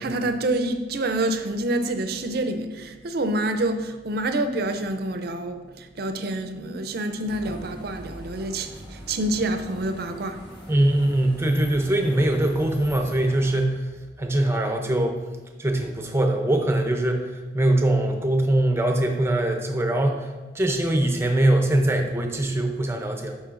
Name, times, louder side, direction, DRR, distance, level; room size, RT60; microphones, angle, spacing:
voice 1, 0.0-10.4, right 1 dB, 60° right, 0.5 m, -27 dB
sound 1, 7.2-13.6, equal, 25° left, 1.2 m, -42 dB
voice 2, 10.7-13.8 14.2-15.2 15.6-17.2 17.5-20.2 20.5-23.4, right 1 dB, 15° right, 0.6 m, -22 dB
10.0 x 4.3 x 2.5 m
head